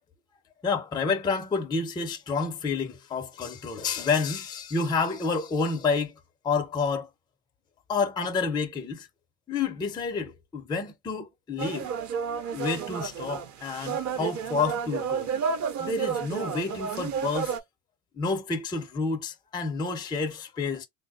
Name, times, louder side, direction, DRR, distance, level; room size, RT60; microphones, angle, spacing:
voice 1, 0.6-6.1 6.4-7.1 7.9-9.1 9.5-11.9 12.5-15.3 15.8-17.5 18.2-20.9, left 4 dB, 10° left, 0.4 m, -29 dB
sound 1, 11.6-17.6, right 6 dB, 40° right, 0.6 m, -31 dB
3.3 x 2.1 x 2.6 m
supercardioid pair, 95°, 47 cm